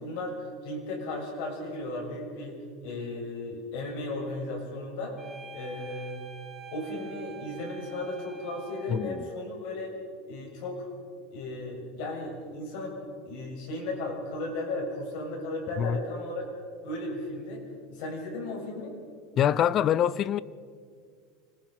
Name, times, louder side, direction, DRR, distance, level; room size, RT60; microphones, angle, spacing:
voice 1, 0.0-5.2 5.5-6.2 6.7-9.9 10.2-10.9 11.3-16.5 16.8-17.6 17.9-18.9, left 2 dB, 65° left, 7.0 m, -35 dB
sound 1, 5.2-9.4, right 3 dB, 10° right, 2.9 m, -46 dB
voice 2, 8.9-9.3 15.8-16.0 19.4-20.4, left 10 dB, 35° left, 0.5 m, -25 dB
25.5 x 19.5 x 5.8 m
supercardioid pair, 145°, 0 cm